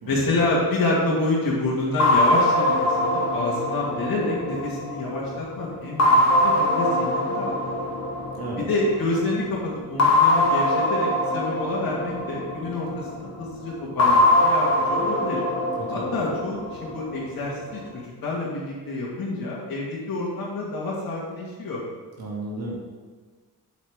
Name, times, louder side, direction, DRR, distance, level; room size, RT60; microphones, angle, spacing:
voice 1, 0.1-7.7 8.6-15.4 15.9-21.8, left 2 dB, 75° left, -5 dB, 2.0 m, -28 dB
sound 1, 2.0-5.3 6.0-8.9 10.0-13.1 14.0-17.1, left 1 dB, 45° left, 1.3 m, -22 dB
voice 2, 22.2-22.7, right 2 dB, 85° right, -4 dB, 2.3 m, -33 dB
8.2 x 7.9 x 3.6 m, 1.4 s
wide cardioid pair, 140°, 36 cm